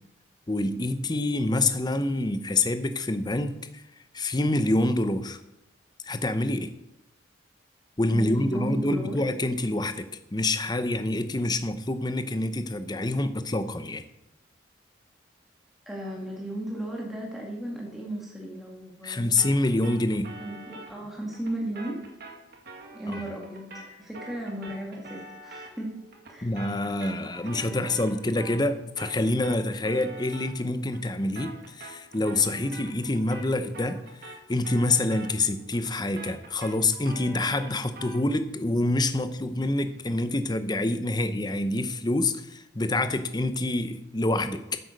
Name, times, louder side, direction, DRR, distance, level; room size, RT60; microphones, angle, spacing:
voice 1, 0.5-3.8 4.1-5.4 6.0-6.7 8.0-14.0 19.0-20.4 23.1-23.2 26.4-44.8, left 2 dB, 20° left, 10 dB, 0.7 m, -27 dB
voice 2, 8.1-9.2 15.9-19.3 20.4-22.0 22.9-25.9 26.3-26.5 27.5-28.1, right 1 dB, ahead, -3 dB, 2.0 m, -35 dB
sound 1, 19.4-28.7 29.0-38.3, right 2 dB, 55° right, 2.1 m, -45 dB
9.7 x 7.9 x 6.5 m, 0.86 s
head